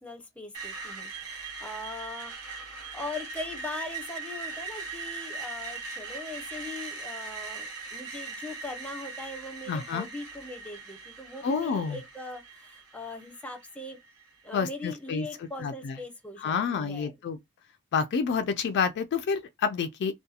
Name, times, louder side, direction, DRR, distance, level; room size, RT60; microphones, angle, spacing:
voice 1, 0.0-2.7 2.9-14.0 14.4-17.1, left 2 dB, 5° left, 0.6 m, -40 dB
Screech, 0.5-14.5, right 4 dB, 80° right, 1.0 m, -40 dB
voice 2, 9.7-10.1 11.4-12.0 14.5-15.3 15.6-16.0 16.4-17.4 17.9-20.1, left 5 dB, 50° left, 0.3 m, -28 dB
2.7 x 2.2 x 2.3 m
head